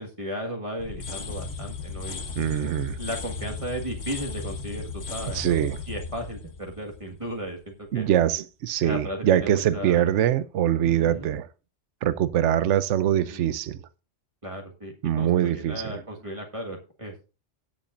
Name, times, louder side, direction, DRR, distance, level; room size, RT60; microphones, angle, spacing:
voice 1, 0.0-2.2 3.0-8.1 8.8-10.0 10.8-11.3 13.3-13.5 14.4-17.1, equal, 25° right, 1.7 m, -35 dB
sound 1, 0.8-7.6, left 4 dB, 90° left, 1.5 m, -36 dB
voice 2, 2.4-3.0 5.3-5.8 7.9-11.5 12.0-13.8 15.0-16.0, right 11 dB, 75° right, 0.9 m, -23 dB
17.5 x 7.2 x 2.5 m
omnidirectional pair, 1.2 m